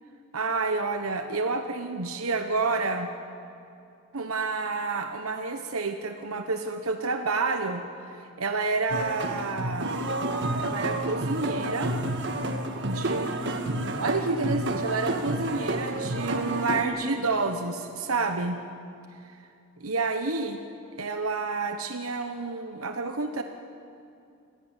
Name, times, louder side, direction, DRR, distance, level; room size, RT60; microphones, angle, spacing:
voice 1, 0.3-3.1 4.1-10.0 10.6-11.9 12.8-18.6 19.8-20.6 21.0-23.4, right 3 dB, 90° right, 6 dB, 1.1 m, -29 dB
sound 1, 8.9-16.8, right 1 dB, 55° right, 1.7 m, -30 dB
25.5 x 17.0 x 9.0 m, 2.6 s
head